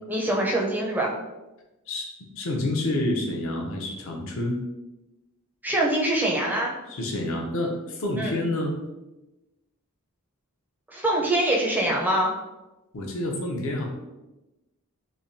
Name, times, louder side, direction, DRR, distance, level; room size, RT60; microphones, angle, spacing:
voice 1, 0.1-1.1 5.6-6.7 8.2-8.4 10.9-12.3, right 1 dB, 10° right, -2 dB, 0.5 m, -24 dB
voice 2, 1.9-4.6 6.9-8.8 12.9-13.9, left 1 dB, 65° left, 1 dB, 0.6 m, -28 dB
3.1 x 2.2 x 2.6 m, 1.0 s
head